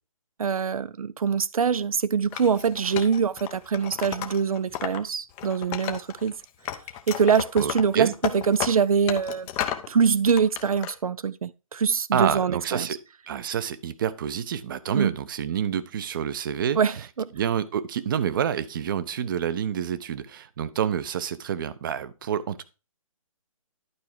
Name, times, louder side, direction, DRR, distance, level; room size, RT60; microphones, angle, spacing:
voice 1, 0.4-6.3 7.1-9.5 9.9-12.9 14.9-15.1 16.8-17.3, right 6 dB, 85° right, 0.5 m, -24 dB
Wood, 2.3-5.0 5.3-6.3 6.6-9.9 10.3-10.9, left 11 dB, 10° left, 0.4 m, -33 dB
voice 2, 7.6-8.1 12.1-13.0 13.3-16.8 17.3-22.6, right 8 dB, 35° right, 0.7 m, -28 dB
11.5 x 4.7 x 4.5 m
hypercardioid pair, 155°, 18 cm